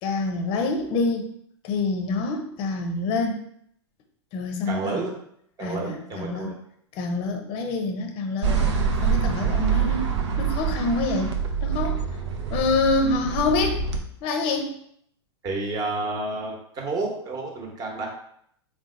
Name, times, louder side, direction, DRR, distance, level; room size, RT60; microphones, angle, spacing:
voice 1, 0.0-1.3 1.6-3.4 4.3-5.0 5.6-6.5 7.0-8.6 9.0-10.1 10.4-11.3 11.6-12.0 12.5-13.8 14.2-14.7, left 3 dB, 40° left, 4 dB, 0.6 m, -26 dB
voice 2, 4.7-5.1 5.6-6.6 15.4-18.1, right 3 dB, 25° right, 0 dB, 1.0 m, -30 dB
sound 1, 8.4-14.0, right 6 dB, 80° right, 0.7 m, -25 dB
3.9 x 2.3 x 3.8 m, 0.68 s
hypercardioid pair, 120°, 15 cm